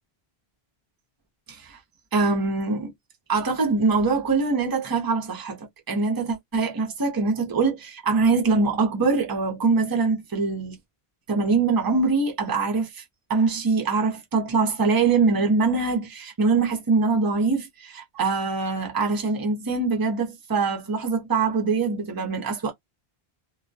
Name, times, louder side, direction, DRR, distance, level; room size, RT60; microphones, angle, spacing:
voice 1, 1.5-1.8 2.1-2.9 3.3-10.8 11.3-13.0 13.3-22.7, right 4 dB, 25° right, 0.7 m, -23 dB
2.2 x 2.2 x 2.6 m
omnidirectional pair, 1.0 m